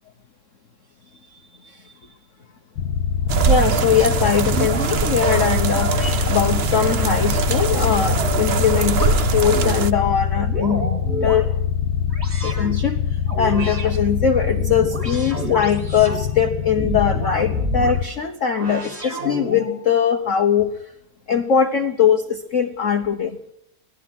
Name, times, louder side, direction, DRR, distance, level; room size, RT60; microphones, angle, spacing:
sound 1, 2.8-18.1, left 8 dB, 70° left, 1.9 m, -24 dB
sound 2, 3.3-9.9, right 7 dB, 70° right, 0.6 m, -22 dB
voice 1, 3.5-10.8 11.2-11.5 12.4-13.0 13.4-20.7 21.3-23.4, left 7 dB, 45° left, 6 dB, 1.2 m, -21 dB
sound 3, 4.3-5.0 5.7-6.2 6.7-8.5 8.9-9.8 10.3-11.4 12.1-12.7 13.3-13.9 14.4-16.2 16.7-18.0 18.5-19.8, right 1 dB, 30° right, 3.9 m, -30 dB
25.0 x 17.5 x 6.2 m, 0.75 s
omnidirectional pair, 2.3 m